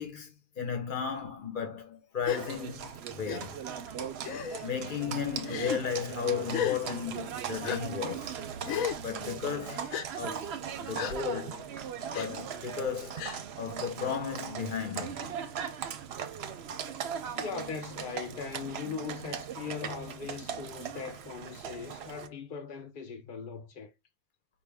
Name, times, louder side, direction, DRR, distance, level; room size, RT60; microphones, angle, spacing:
voice 1, 0.0-3.6 4.6-8.4 9.0-11.6 12.1-13.3 13.6-15.3, left 6 dB, 40° left, 0.9 m, -35 dB
Gasp, 2.2-2.4 3.3-3.4 4.2-4.6 5.4-5.8 6.5-6.8 7.6-7.8 8.6-9.0 9.9-10.1 10.9-11.2 12.1-12.3 13.2-13.4, left 9 dB, 80° left, 1.0 m, -33 dB
Livestock farm animals working animals, 2.3-22.3, right 8 dB, 60° right, 0.7 m, -39 dB
voice 2, 17.4-23.9, left 6 dB, 60° left, 0.5 m, -40 dB
4.7 x 2.6 x 3.4 m
omnidirectional pair, 1.5 m